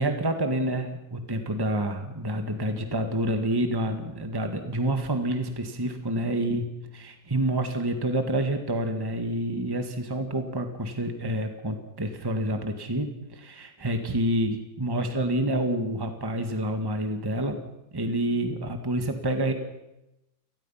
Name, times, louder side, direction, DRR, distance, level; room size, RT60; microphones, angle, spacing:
voice 1, 0.0-6.7 6.9-17.6 17.9-19.5, right 1 dB, 15° right, 6 dB, 1.7 m, -28 dB
29.5 x 19.5 x 5.8 m, 0.94 s
omnidirectional pair, 2.0 m